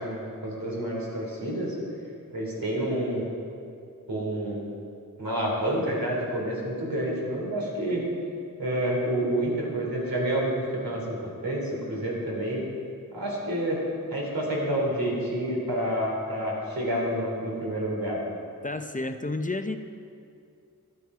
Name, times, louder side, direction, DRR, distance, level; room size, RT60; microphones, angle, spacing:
voice 1, 0.0-1.7 2.3-3.2 4.1-4.6 5.2-8.0 8.6-11.1 11.4-12.6 13.1-13.8 14.1-18.2, right 1 dB, 85° right, -3 dB, 3.1 m, -28 dB
voice 2, 18.6-19.8, left 2 dB, 25° left, 8 dB, 0.6 m, -30 dB
12.5 x 10.5 x 4.8 m, 2.5 s
wide cardioid pair, 65°, 34 cm